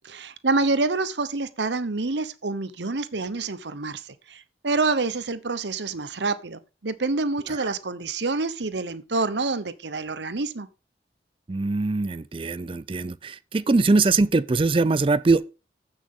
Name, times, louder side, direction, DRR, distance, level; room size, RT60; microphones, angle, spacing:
voice 1, 0.0-10.7, right 3 dB, 80° right, 1.0 m, -27 dB
voice 2, 11.5-15.5, right 3 dB, 30° right, 0.4 m, -22 dB
15.0 x 6.3 x 3.7 m
head